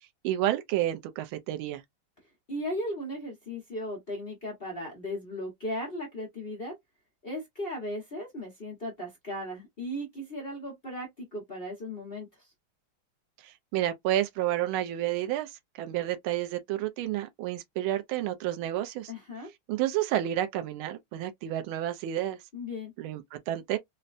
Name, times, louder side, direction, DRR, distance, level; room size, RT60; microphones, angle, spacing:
voice 1, 0.2-1.8 13.4-19.1 19.7-22.4 23.0-23.8, right 13 dB, 80° right, 1.5 m, -30 dB
voice 2, 2.5-6.7 7.2-12.5 19.1-19.5 22.5-22.9, left 1 dB, 40° left, 0.8 m, -36 dB
4.1 x 2.2 x 2.5 m
omnidirectional pair, 2.4 m